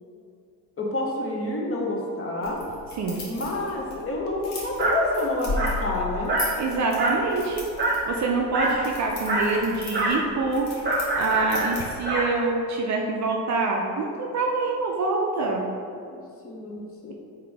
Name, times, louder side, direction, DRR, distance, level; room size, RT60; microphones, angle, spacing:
voice 1, 0.8-2.6 3.3-6.3 8.6-8.8 15.8-17.1, left 2 dB, 30° left, -2 dB, 0.8 m, -29 dB
sound 1, 2.4-12.2, left 2 dB, 60° left, 1.3 m, -37 dB
Dog, 4.8-5.0 5.6-5.8 6.3-6.6 7.0-7.3 7.8-8.0 8.5-8.8 9.3-9.5 9.9-10.2 10.8-12.3, right 2 dB, 20° right, 1.1 m, -25 dB
voice 2, 6.6-7.7 8.1-10.7 11.2-15.6, right 3 dB, 35° right, 0 dB, 0.5 m, -25 dB
3.8 x 2.9 x 3.4 m, 2.4 s
hypercardioid pair, 60°, 48 cm